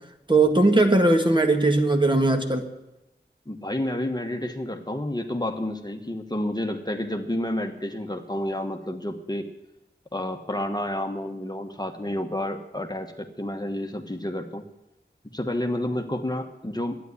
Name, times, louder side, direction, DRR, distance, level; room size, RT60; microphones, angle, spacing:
voice 1, 0.3-2.7, right 2 dB, 25° right, 4 dB, 1.8 m, -19 dB
voice 2, 3.5-9.5 10.1-14.6 15.3-17.0, left 1 dB, 25° left, 4 dB, 1.2 m, -30 dB
12.0 x 9.6 x 9.7 m, 0.93 s
wide cardioid pair, 50°, 18 cm